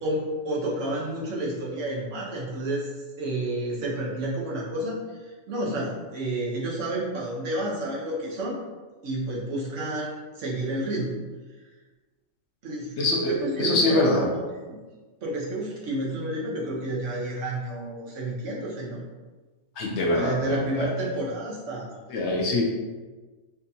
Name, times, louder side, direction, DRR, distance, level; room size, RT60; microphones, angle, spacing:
voice 1, 0.0-2.9 3.2-8.6 9.0-11.2 12.6-12.9 13.3-14.8 15.2-19.0 20.1-21.9, right 1 dB, 70° right, -4 dB, 1.3 m, -30 dB
voice 2, 13.0-14.2 19.8-20.9 22.1-22.6, left 2 dB, 65° left, -1 dB, 0.8 m, -24 dB
4.3 x 2.7 x 2.7 m, 1.3 s
omnidirectional pair, 1.3 m